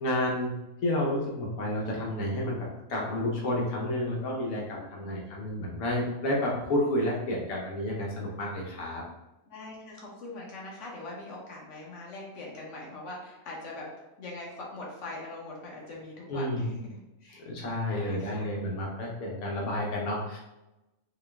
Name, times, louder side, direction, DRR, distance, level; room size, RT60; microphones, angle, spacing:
voice 1, 0.0-9.0 16.3-16.7 17.4-20.4, left 1 dB, 85° left, -2 dB, 1.2 m, -30 dB
voice 2, 9.5-13.9 14.2-17.5 17.9-18.5, left 2 dB, 60° left, -3 dB, 1.3 m, -42 dB
4.3 x 2.2 x 3.3 m, 0.99 s
omnidirectional pair, 1.5 m